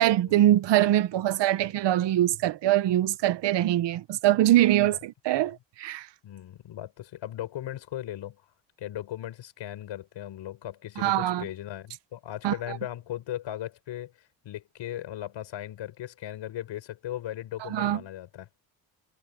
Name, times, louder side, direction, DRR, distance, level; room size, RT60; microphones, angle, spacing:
voice 1, 0.0-6.1 11.0-11.5 12.4-12.8 17.6-18.0, right 13 dB, 65° right, 0.9 m, -23 dB
voice 2, 6.2-8.4 8.8-14.1 14.4-18.5, left 12 dB, 75° left, 4.9 m, -37 dB
cardioid pair, 155°, 45 cm